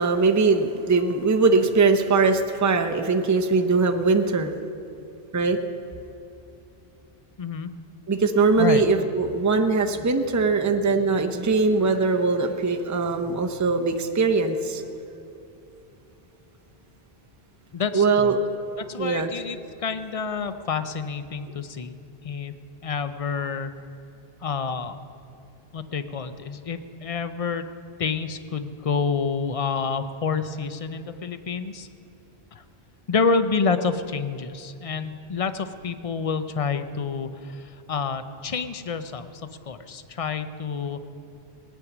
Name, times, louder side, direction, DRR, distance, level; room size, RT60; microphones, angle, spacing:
voice 1, 0.0-4.5 5.3-5.6 8.1-14.8 17.9-18.4 19.0-19.3, right 4 dB, 20° right, 5 dB, 0.6 m, -21 dB
voice 2, 7.4-7.7 8.6-8.8 17.7-18.3 18.8-21.9 22.2-22.5 22.8-23.7 24.4-25.0 25.7-27.6 28.0-31.9 32.5-32.6 33.1-39.3 39.7-41.0, left 5 dB, 40° left, 10 dB, 0.6 m, -28 dB
18.0 x 9.5 x 6.0 m, 2.8 s
omnidirectional pair, 1.1 m